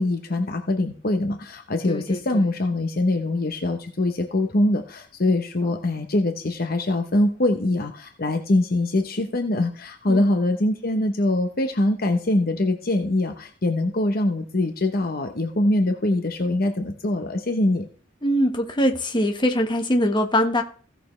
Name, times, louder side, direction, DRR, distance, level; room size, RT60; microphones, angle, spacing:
voice 1, 0.0-17.9, left 1 dB, 50° left, 5 dB, 0.9 m, -23 dB
voice 2, 1.9-2.4 10.1-10.3 18.2-20.6, equal, 25° left, 4 dB, 1.3 m, -22 dB
16.0 x 6.8 x 3.2 m, 0.43 s
head